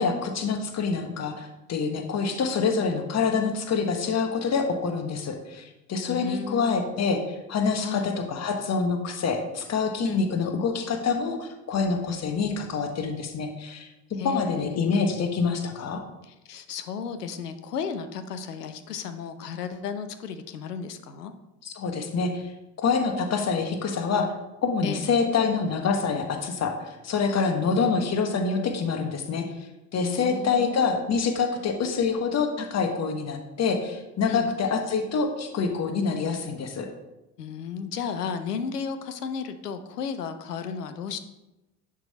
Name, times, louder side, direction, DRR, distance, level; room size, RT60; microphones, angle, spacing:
voice 1, 0.0-13.9 14.2-16.0 21.6-22.5 22.8-24.3 24.6-26.8 27.0-29.5 29.9-36.9, left 5 dB, 35° left, 5 dB, 1.4 m, -26 dB
voice 2, 6.1-6.8 7.8-8.1 10.0-10.3 14.2-14.9 16.2-21.3 24.8-25.1 27.3-27.6 29.9-30.8 34.3-34.5 37.4-41.2, left 6 dB, 80° left, 11 dB, 0.8 m, -34 dB
10.5 x 3.8 x 4.2 m, 0.96 s
figure-of-eight pair, 65°, 46 cm